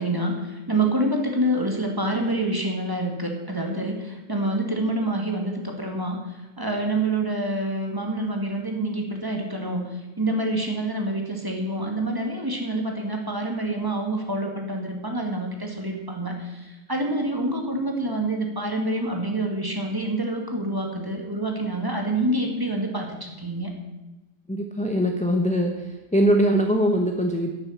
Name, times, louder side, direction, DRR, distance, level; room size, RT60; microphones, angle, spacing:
voice 1, 0.0-23.7, right 1 dB, 15° right, 2 dB, 1.6 m, -27 dB
voice 2, 24.5-27.5, equal, 5° left, 2 dB, 0.7 m, -22 dB
11.0 x 6.6 x 7.1 m, 1.0 s
omnidirectional pair, 1.5 m